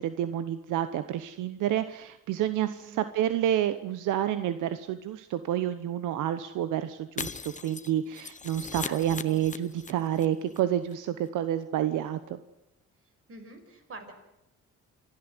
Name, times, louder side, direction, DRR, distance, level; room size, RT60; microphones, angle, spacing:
voice 1, 0.0-12.4, right 11 dB, 85° right, 11 dB, 1.1 m, -29 dB
voice 2, 2.8-3.1 8.8-9.4 13.3-14.1, right 2 dB, 45° right, 6 dB, 5.6 m, -46 dB
Shatter, 7.2-10.3 10.5-10.6 10.9-11.0, left 5 dB, 25° left, 0.9 m, -39 dB
28.0 x 12.5 x 9.8 m, 0.88 s
cardioid pair, 90°, 30 cm